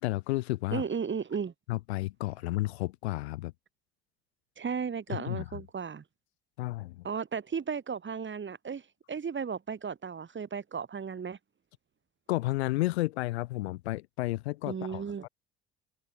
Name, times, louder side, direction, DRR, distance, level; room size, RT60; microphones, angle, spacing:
voice 1, 0.0-0.8 1.7-3.5 5.1-5.6 6.6-7.1 12.3-15.3, left 18 dB, 85° left, 4.4 m, -32 dB
voice 2, 0.7-1.5 4.6-6.0 7.0-11.4 14.7-15.3, right 6 dB, 35° right, 5.6 m, -35 dB
hypercardioid pair, 65°, 32 cm